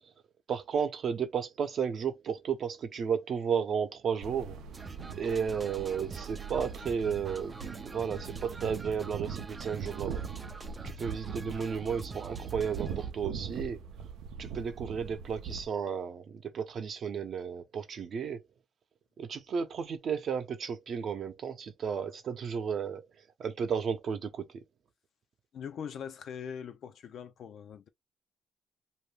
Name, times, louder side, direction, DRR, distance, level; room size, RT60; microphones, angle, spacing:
voice 1, 0.5-4.6 5.2-10.3 10.8-13.8 14.4-18.4 19.2-23.1 23.4-24.5, right 7 dB, 60° right, 0.7 m, -33 dB
sound 1, 4.2-15.7, right 6 dB, 90° right, 0.5 m, -41 dB
sound 2, 4.7-13.1, right 3 dB, 25° right, 0.4 m, -46 dB
voice 2, 25.5-27.9, left 7 dB, 65° left, 0.5 m, -42 dB
2.6 x 2.3 x 3.3 m
cardioid pair, 90°, 0 cm